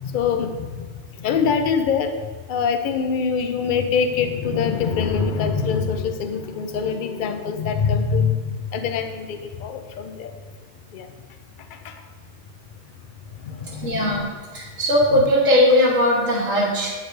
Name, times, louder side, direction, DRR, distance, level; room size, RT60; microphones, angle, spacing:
voice 1, 0.0-0.9 1.2-2.1 2.5-10.3 10.9-11.1 11.8-11.9 13.4-14.2 15.1-15.3, left 6 dB, 60° left, 7 dB, 0.5 m, -24 dB
voice 2, 13.8-14.2 14.5-16.9, left 1 dB, 80° right, -6 dB, 1.6 m, -18 dB
8.0 x 4.9 x 3.2 m, 1.4 s
omnidirectional pair, 1.3 m